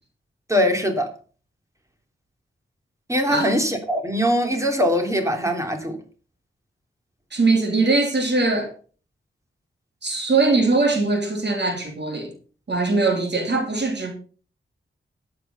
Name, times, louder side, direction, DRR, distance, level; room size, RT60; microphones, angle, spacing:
voice 1, 0.5-1.1 3.1-6.0, equal, 15° right, 3.0 m, -22 dB
voice 2, 7.3-8.7 10.0-12.3 12.7-14.1, right 3 dB, 55° right, 3.4 m, -21 dB
13.5 x 8.2 x 5.6 m
wide cardioid pair, 115°, 21 cm